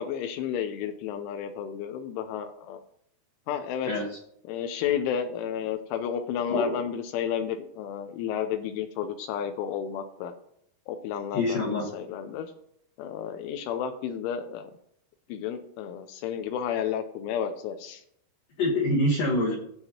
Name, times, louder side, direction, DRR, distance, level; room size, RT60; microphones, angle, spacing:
voice 1, 0.0-2.8 3.5-3.9 4.5-10.3 10.9-11.7 11.9-12.5 13.0-14.7 15.3-18.0, left 8 dB, 85° left, 7 dB, 3.1 m, -32 dB
voice 2, 3.8-4.2 6.5-6.8 11.3-11.9 18.6-19.6, left 1 dB, 65° left, -3 dB, 2.2 m, -26 dB
15.5 x 7.5 x 2.9 m, 0.70 s
omnidirectional pair, 5.6 m